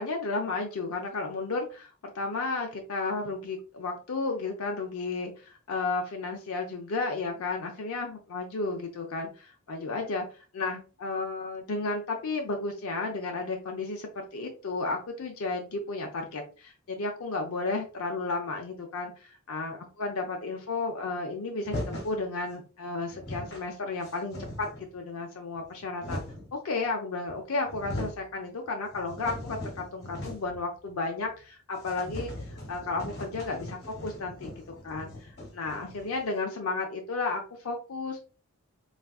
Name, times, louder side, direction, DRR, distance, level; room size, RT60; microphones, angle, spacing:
voice 1, 0.0-24.7 24.9-26.2 26.5-32.3 32.7-35.3 35.5-38.2, left 3 dB, 80° left, 2 dB, 0.5 m, -33 dB
sound 1, 21.6-22.2 22.8-22.9 23.1-23.7 24.0-24.9 25.6-26.5 27.3-27.4 27.6-28.3 28.7-30.6 30.9-31.0 31.3-31.4 31.8-36.3, left 1 dB, 50° left, 1.0 m, -39 dB
3.5 x 2.4 x 2.3 m, 0.35 s
head